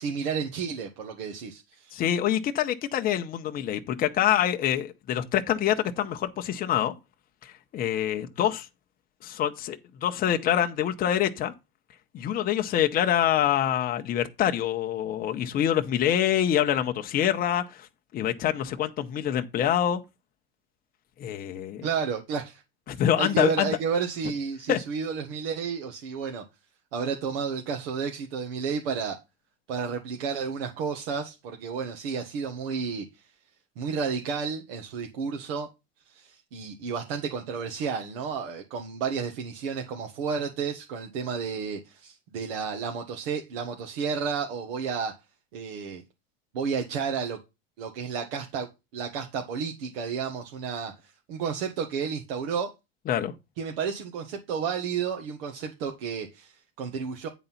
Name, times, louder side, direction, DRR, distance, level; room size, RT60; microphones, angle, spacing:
voice 1, 0.0-2.0 21.8-22.6 23.2-26.4 26.9-29.2 29.7-33.2 33.8-35.7 36.1-45.1 45.5-46.0 46.5-47.4 47.8-48.7 48.9-52.7 53.6-57.3, right 6 dB, 75° right, 1.6 m, -31 dB
voice 2, 1.9-6.9 7.4-8.7 9.2-11.5 12.1-17.9 18.1-20.0 21.2-21.9 22.9-23.7 24.7-24.8 53.1-53.3, left 10 dB, 30° left, 0.9 m, -26 dB
9.4 x 4.0 x 5.7 m
supercardioid pair, 135°, 30 cm